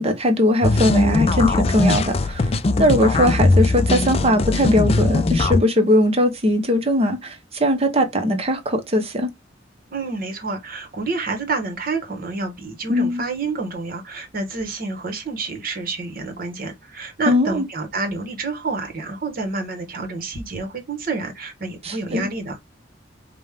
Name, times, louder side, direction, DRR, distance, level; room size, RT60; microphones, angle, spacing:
voice 1, 0.0-2.5 2.8-9.3 12.9-13.2 17.3-17.7 21.8-22.3, left 1 dB, 30° right, 0.8 m, -20 dB
sound 1, 0.6-5.6, left 2 dB, 30° left, 0.4 m, -19 dB
voice 2, 9.9-22.6, right 3 dB, 50° right, 1.1 m, -28 dB
5.1 x 2.2 x 3.5 m
head